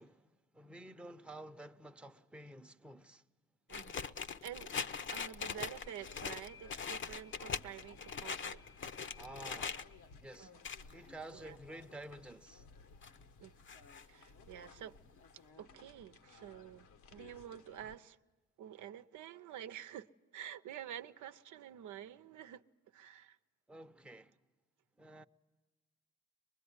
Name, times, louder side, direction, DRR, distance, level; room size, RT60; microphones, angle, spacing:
voice 1, 0.0-3.2 9.2-9.9 10.2-10.5 10.9-12.6 23.7-24.4 25.0-25.2, right 1 dB, 5° right, 0.8 m, -51 dB
sound 1, 3.7-9.8 10.3-10.9 11.4-11.5 11.9-12.0 12.6-13.2 13.7-14.0 14.6-14.7 15.0-15.1 15.3-15.4, left 6 dB, 40° left, 0.8 m, -42 dB
voice 2, 3.7-4.1 4.4-4.8 5.1-8.6 10.4-10.6 10.9-11.0 11.3-11.6 13.4-13.5 14.1-15.0 15.3-18.2 18.6-22.6 22.9-23.4, right 10 dB, 75° right, 0.8 m, -49 dB
sound 2, 5.8-18.0, left 5 dB, 75° left, 1.3 m, -59 dB
23.5 x 21.5 x 9.7 m
cardioid pair, 90°, 30 cm